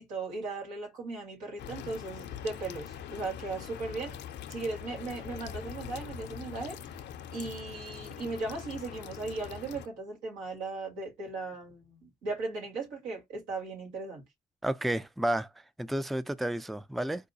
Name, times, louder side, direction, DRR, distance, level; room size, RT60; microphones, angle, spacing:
voice 1, 0.0-4.2 4.5-6.8 7.3-14.2, right 3 dB, 85° right, 1.8 m, -37 dB
sound 1, 1.6-9.9, left 9 dB, 65° left, 0.6 m, -43 dB
voice 2, 14.6-15.5 15.8-17.3, right 1 dB, ahead, 0.4 m, -31 dB
4.7 x 2.2 x 2.7 m
hypercardioid pair, 50°, 19 cm